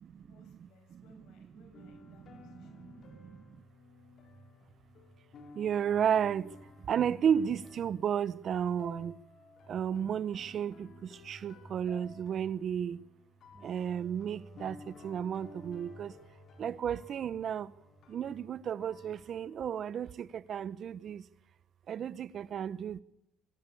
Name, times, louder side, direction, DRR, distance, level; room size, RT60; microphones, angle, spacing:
voice 1, 0.2-2.8, left 3 dB, 80° left, 7.5 m, -63 dB
sound 1, 1.7-20.3, left 2 dB, 60° left, 4.8 m, -55 dB
voice 2, 2.2-3.6 5.5-6.5 6.9-9.2 9.7-13.0 13.6-16.2 16.6-17.7 18.1-21.2 21.9-23.0, right 8 dB, 55° right, 0.9 m, -33 dB
sound 2, 13.5-21.0, right 1 dB, 25° right, 5.3 m, -60 dB
24.5 x 17.0 x 8.6 m
cardioid pair, 100°, 0 cm